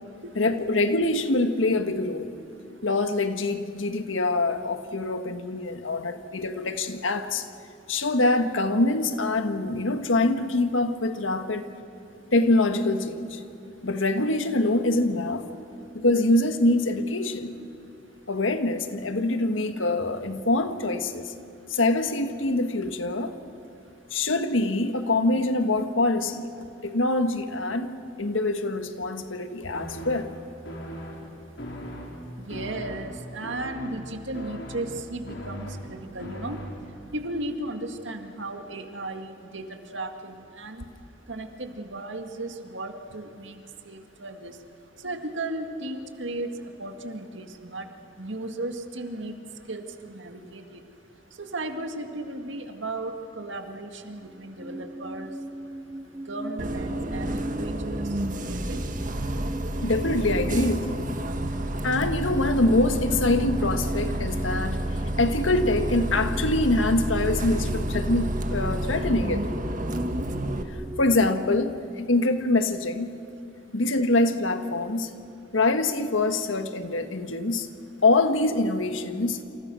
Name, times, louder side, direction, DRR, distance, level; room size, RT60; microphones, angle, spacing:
voice 1, 0.3-2.3 2.8-7.5 7.9-11.7 12.3-13.4 13.8-15.5 15.9-17.5 18.3-21.3 21.7-23.3 24.1-30.3 59.8-61.0 61.8-64.8 65.2-69.4 71.0-73.1 73.7-75.1 75.5-77.7 78.0-79.4, left 2 dB, 90° left, 8 dB, 1.6 m, -24 dB
sound 1, 29.7-37.1, equal, 65° left, 4.6 m, -39 dB
voice 2, 32.4-36.6 37.1-40.9 41.3-43.6 43.8-44.5 45.0-46.5 46.8-47.9 48.2-49.4 49.7-50.8 51.4-55.3 56.3-58.0 58.4-58.8, right 2 dB, 75° right, 6 dB, 2.0 m, -35 dB
sound 2, 54.2-71.4, right 1 dB, 15° right, 0.8 m, -38 dB
Bus, 56.6-70.6, right 1 dB, 45° right, 1.7 m, -30 dB
28.5 x 27.5 x 6.3 m, 2.7 s
head